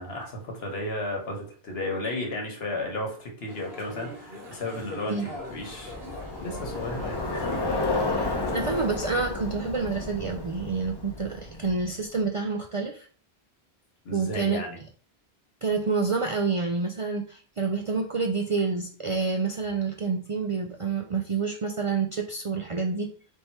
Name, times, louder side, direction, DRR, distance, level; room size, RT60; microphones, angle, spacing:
voice 1, 0.0-6.0 6.4-7.5 14.0-14.8, left 2 dB, 80° left, 2 dB, 1.3 m, -34 dB
sound 1, 3.5-9.0, left 1 dB, 75° right, 1.6 m, -41 dB
Bicycle, 5.5-12.0, left 3 dB, 30° left, 0.6 m, -32 dB
voice 2, 8.5-13.1 14.1-14.6 15.6-23.1, right 4 dB, 55° right, 2 dB, 0.3 m, -28 dB
3.5 x 2.8 x 4.4 m, 0.43 s
omnidirectional pair, 1.0 m